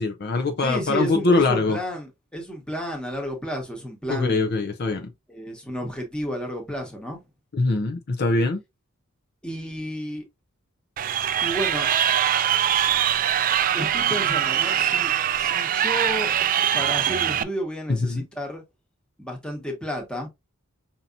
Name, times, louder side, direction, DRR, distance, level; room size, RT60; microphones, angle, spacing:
voice 1, 0.0-1.8 4.1-5.1 7.5-8.6 17.9-18.2, left 3 dB, 50° left, 0.6 m, -23 dB
voice 2, 0.6-4.5 5.3-7.2 9.4-10.2 11.4-11.9 13.7-16.3 16.7-18.6 19.2-20.3, equal, 5° left, 1.2 m, -32 dB
Crowd, 11.0-17.4, right 10 dB, 40° right, 0.3 m, -22 dB
5.6 x 2.8 x 2.4 m
head